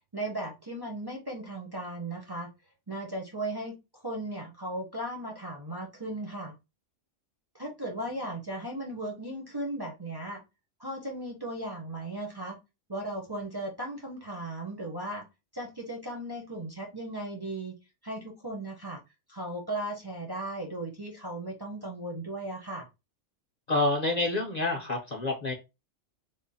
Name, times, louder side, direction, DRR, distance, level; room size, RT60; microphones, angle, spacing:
voice 1, 0.1-2.5 2.9-3.8 4.0-6.5 7.5-10.4 10.8-12.6 12.9-15.2 15.5-17.7 18.0-19.0 19.3-22.9, right 1 dB, 25° right, 0 dB, 0.6 m, -36 dB
voice 2, 23.7-25.5, left 2 dB, 40° left, 0 dB, 0.7 m, -28 dB
3.7 x 2.1 x 4.0 m, 0.25 s
omnidirectional pair, 1.3 m